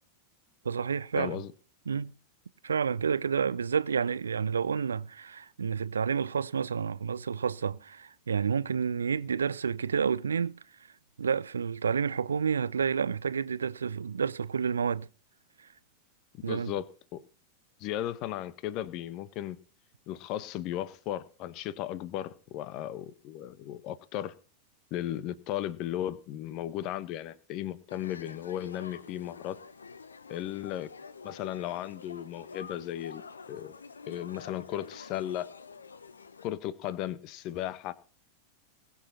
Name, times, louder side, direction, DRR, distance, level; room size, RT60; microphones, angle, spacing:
voice 1, 0.6-1.4 1.9-2.1 2.6-10.5 11.2-15.1 16.4-16.7, right 6 dB, 70° right, 0.6 m, -29 dB
voice 2, 1.1-1.5 16.4-16.8 17.1-17.2 17.8-19.6 20.1-24.3 24.9-29.6 30.3-30.9 31.2-33.2 33.5-33.7 34.1-35.5 36.4-37.9, left 12 dB, 40° left, 1.3 m, -35 dB
sound 1, 27.9-36.5, left 5 dB, 75° left, 0.8 m, -48 dB
21.5 x 7.5 x 4.3 m
figure-of-eight pair, 90°, 0 cm